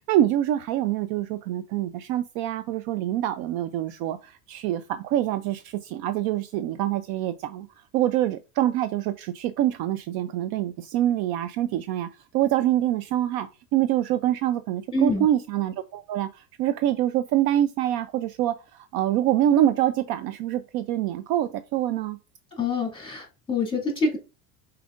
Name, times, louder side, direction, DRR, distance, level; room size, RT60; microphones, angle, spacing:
voice 1, 0.1-12.1 12.3-22.2, right 12 dB, 50° right, 0.5 m, -25 dB
voice 2, 14.9-15.2 22.6-24.2, left 2 dB, 10° left, 2.4 m, -26 dB
4.8 x 4.4 x 2.5 m
hypercardioid pair, 90°, 48 cm